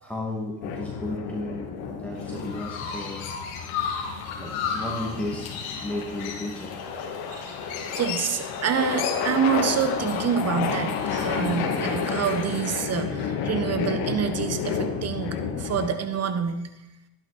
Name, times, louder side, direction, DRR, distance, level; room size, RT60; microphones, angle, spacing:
voice 1, 0.0-3.2 4.4-6.8, left 2 dB, 5° left, -3 dB, 2.5 m, -34 dB
sound 1, 0.6-15.9, left 6 dB, 65° left, 2.3 m, -31 dB
Chirp tweet, 2.2-12.7, left 6 dB, 80° left, 2.5 m, -36 dB
voice 2, 7.9-16.7, right 7 dB, 35° right, 9 dB, 1.4 m, -27 dB
12.0 x 11.0 x 4.4 m, 0.90 s
supercardioid pair, 95°, 43 cm